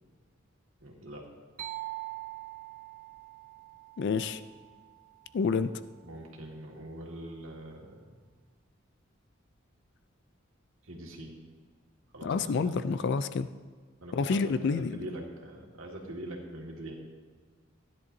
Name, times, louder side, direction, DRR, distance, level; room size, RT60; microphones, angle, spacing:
voice 1, 0.8-1.3 6.0-8.1 10.8-11.4 12.1-13.0 14.0-16.9, right 1 dB, 80° right, -1 dB, 1.9 m, -43 dB
sound 1, 1.6-5.3, right 17 dB, 45° right, 0.5 m, -43 dB
voice 2, 4.0-4.4 5.3-5.7 12.2-13.5 14.1-14.9, left 5 dB, 60° left, 13 dB, 0.3 m, -28 dB
15.5 x 10.5 x 2.7 m, 1.5 s
head